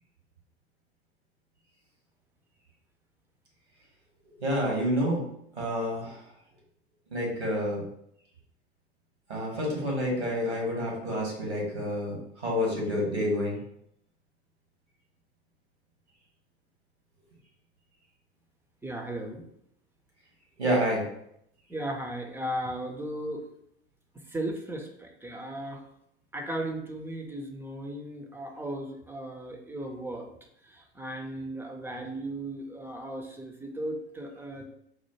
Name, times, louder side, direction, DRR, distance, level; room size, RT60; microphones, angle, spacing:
voice 1, 4.4-5.2 5.5-6.2 7.1-7.8 9.3-13.6 20.6-21.1, equal, 85° right, -2 dB, 1.3 m, -28 dB
voice 2, 18.8-19.5 21.7-23.4 24.3-25.8 26.3-30.3 30.6-34.7, right 1 dB, 5° right, 2 dB, 0.4 m, -36 dB
4.2 x 2.1 x 3.1 m, 0.73 s
figure-of-eight pair, 75°, 33 cm